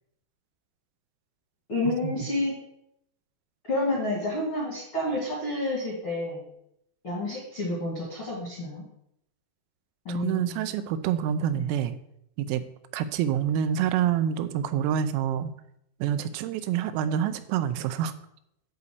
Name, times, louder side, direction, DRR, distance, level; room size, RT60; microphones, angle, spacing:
voice 1, 1.7-2.5 3.7-6.4 7.0-8.8 10.0-10.6 11.5-11.7, left 1 dB, 50° left, -6 dB, 1.5 m, -29 dB
voice 2, 10.1-12.0 12.4-12.7 12.9-15.5 16.0-18.1, right 9 dB, 85° right, 11 dB, 3.4 m, -27 dB
11.0 x 4.1 x 6.6 m, 0.76 s
omnidirectional pair, 6.0 m